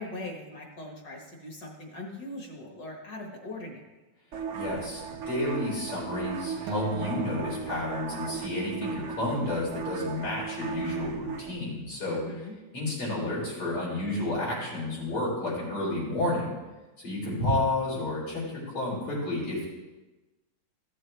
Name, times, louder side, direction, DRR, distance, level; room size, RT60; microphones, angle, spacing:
voice 1, 0.0-3.9 12.1-12.5, left 2 dB, 50° left, 1 dB, 1.9 m, -40 dB
sound 1, 4.3-11.5, right 7 dB, 85° right, 0.6 m, -37 dB
voice 2, 4.5-12.2 12.7-16.5 17.0-19.6, left 2 dB, 80° left, -5 dB, 4.5 m, -31 dB
Acoustic guitar, 6.7-9.1, right 4 dB, 65° right, 1.2 m, -37 dB
14.5 x 7.3 x 3.3 m, 1.1 s
omnidirectional pair, 2.4 m